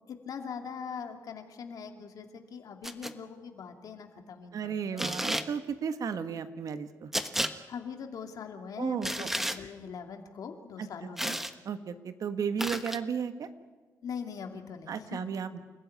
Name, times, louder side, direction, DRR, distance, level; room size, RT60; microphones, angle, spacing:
voice 1, 0.1-5.0 7.7-11.6 14.0-15.3, left 6 dB, 75° left, 5 dB, 2.5 m, -42 dB
sound 1, 2.8-3.1 5.0-5.5 7.1-7.5 9.0-9.6 11.2-11.5 12.6-13.0, equal, 5° right, 1.3 m, -32 dB
voice 2, 4.5-7.1 8.8-9.3 10.8-10.9 11.2-11.4 11.6-13.5 14.9-15.6, right 6 dB, 65° right, 9 dB, 1.5 m, -34 dB
29.0 x 15.0 x 9.6 m, 1.4 s
cardioid pair, 80°, 6 cm